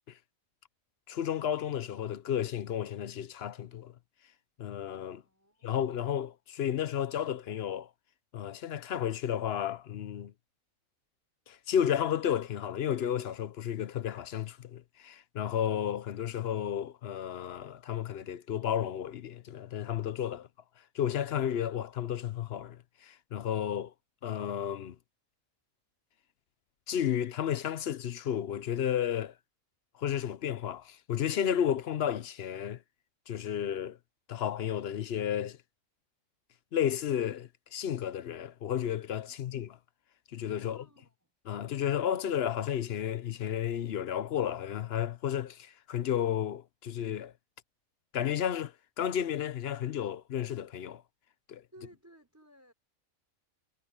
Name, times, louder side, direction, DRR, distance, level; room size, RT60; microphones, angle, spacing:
voice 1, 1.1-3.9 4.6-5.2 5.6-7.9 8.3-10.3 11.5-20.5 20.9-23.9 24.2-25.0 26.9-29.3 30.0-32.8 33.3-34.0 34.3-35.6 36.7-39.7 40.3-40.8 41.5-47.3 48.1-51.0 51.5-51.6, left 9 dB, 55° left, 0.8 m, -32 dB
voice 2, 5.1-5.8 39.3-39.6 40.6-41.3 51.7-52.7, right 1 dB, 10° right, 4.8 m, -58 dB
omnidirectional pair, 1.5 m